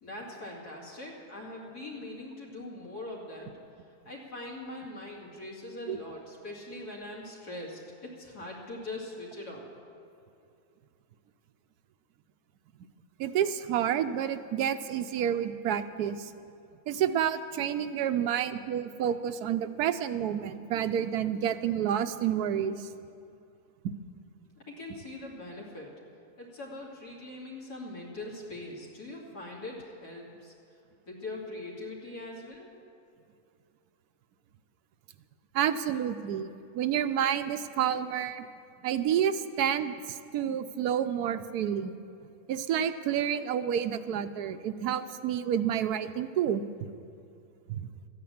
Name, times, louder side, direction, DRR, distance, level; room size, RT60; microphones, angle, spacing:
voice 1, 0.0-3.5 4.0-9.7 24.6-25.9 26.4-30.5 31.1-32.7, left 2 dB, 80° left, -3 dB, 3.2 m, -42 dB
voice 2, 13.2-16.3 16.9-22.9 23.8-23.9 35.5-38.5 38.8-42.0 42.5-46.6 47.7-47.9, right 9 dB, 80° right, 10 dB, 1.2 m, -29 dB
13.5 x 9.4 x 8.6 m, 2.6 s
omnidirectional pair, 1.7 m